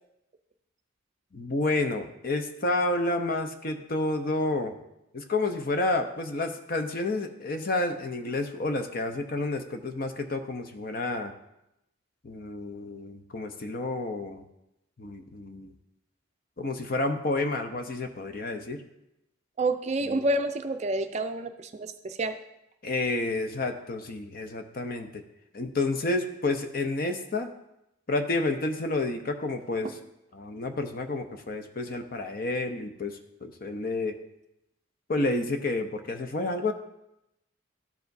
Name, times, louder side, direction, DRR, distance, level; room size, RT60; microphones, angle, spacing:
voice 1, 1.3-4.8 5.1-11.3 12.2-14.4 15.0-15.7 16.6-18.8 20.1-20.2 22.8-25.2 25.5-27.5 28.1-29.9 30.3-34.2 35.1-36.7, left 2 dB, 45° left, 6 dB, 0.7 m, -30 dB
voice 2, 19.6-22.3, right 2 dB, 35° right, 8 dB, 0.4 m, -28 dB
13.0 x 4.9 x 2.6 m, 0.85 s
head